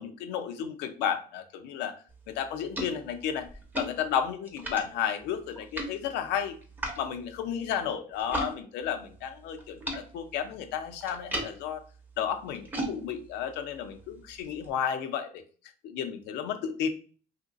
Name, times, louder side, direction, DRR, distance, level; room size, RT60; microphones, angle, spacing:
voice 1, 0.0-1.9 2.3-3.5 3.8-6.6 7.0-11.8 12.2-15.4 15.8-16.9, left 8 dB, 90° left, 7 dB, 0.5 m, -32 dB
sound 1, 2.1-8.5 8.8-14.7, right 1 dB, 10° right, 0.7 m, -40 dB
2.8 x 2.5 x 2.5 m, 0.40 s
cardioid pair, 110°, 17 cm